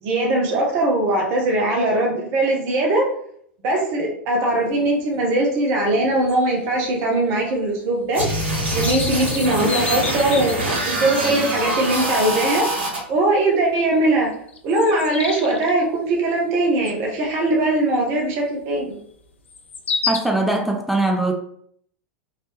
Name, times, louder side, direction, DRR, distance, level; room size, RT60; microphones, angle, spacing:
voice 1, 0.0-3.1 3.6-8.3 8.7-10.6 10.8-12.7 13.1-14.3 14.6-19.0, right 2 dB, 40° right, 0.8 m, -20 dB
sound 1, 4.5-4.6 4.9-5.0 5.4-7.1 7.4-7.5 7.9-8.0 8.3-11.0 11.6-11.7 12.1-12.3 12.7-12.9 13.8-13.9 14.3-15.7 16.9-17.1 17.5-17.6 19.5-20.2, left 5 dB, 70° left, 0.4 m, -30 dB
sound 2, 8.1-13.0, right 1 dB, 65° right, 1.3 m, -24 dB
voice 2, 20.1-21.3, right 2 dB, ahead, 0.3 m, -21 dB
2.9 x 2.9 x 3.0 m
figure-of-eight pair, 90°, 7 cm